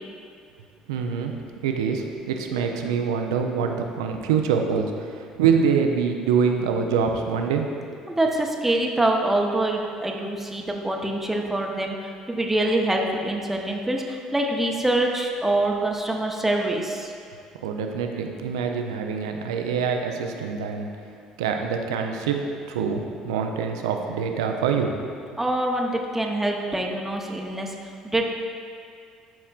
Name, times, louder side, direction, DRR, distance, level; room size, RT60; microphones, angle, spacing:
voice 1, 0.9-7.6 17.6-20.9 21.4-22.4 22.7-25.0, right 6 dB, 75° right, 4 dB, 0.5 m, -25 dB
voice 2, 8.1-17.1 25.4-28.3, right 1 dB, 10° right, 0 dB, 0.8 m, -25 dB
12.0 x 4.2 x 2.4 m, 2.2 s
figure-of-eight pair, 55°, 3 cm